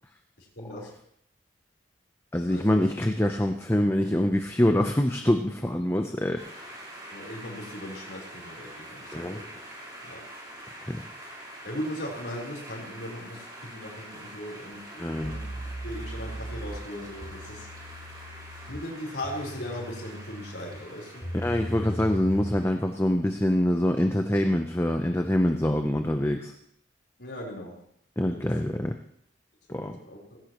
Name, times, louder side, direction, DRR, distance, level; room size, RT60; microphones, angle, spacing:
voice 1, 0.4-1.0 2.5-2.8 7.1-9.6 10.0-10.2 11.6-17.7 18.7-21.3 27.2-27.8 28.3-28.4 29.7-30.4, left 1 dB, 60° left, -2 dB, 4.1 m, -38 dB
voice 2, 2.3-6.8 9.1-9.4 10.8-11.0 15.0-15.4 21.4-26.5 28.2-29.0 29.7-30.0, left 1 dB, 15° left, 5 dB, 0.7 m, -25 dB
sound 1, 6.4-23.0, right 1 dB, 20° right, 4.0 m, -45 dB
sound 2, 15.2-22.7, equal, 40° left, 7.8 m, -38 dB
18.0 x 17.0 x 3.0 m, 0.69 s
head